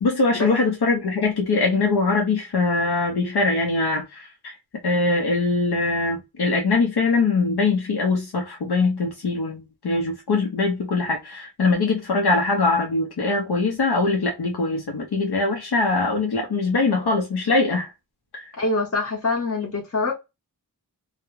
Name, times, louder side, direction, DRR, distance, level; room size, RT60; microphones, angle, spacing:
voice 1, 0.0-4.6 4.8-17.9 18.3-18.4, left 3 dB, 90° left, 0.6 m, -22 dB
voice 2, 18.6-20.1, left 3 dB, 45° left, 0.7 m, -25 dB
2.3 x 2.0 x 2.9 m
wide cardioid pair, 50°, 39 cm